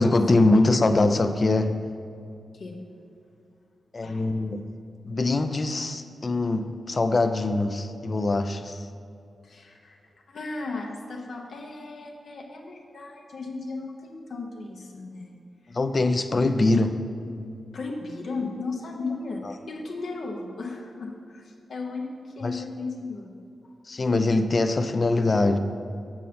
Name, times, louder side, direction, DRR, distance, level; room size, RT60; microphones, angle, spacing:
voice 1, 0.0-1.7 3.9-4.6 5.0-8.8 15.7-17.0 19.4-19.5 22.4-22.6 23.9-25.6, left 2 dB, 45° left, 9 dB, 0.5 m, -23 dB
voice 2, 5.4-5.7 9.4-10.0 10.3-15.4 15.6-15.7 17.7-23.3, left 3 dB, 75° left, 1 dB, 0.9 m, -36 dB
7.1 x 6.3 x 4.2 m, 2.5 s
cardioid pair, 55°, 0 cm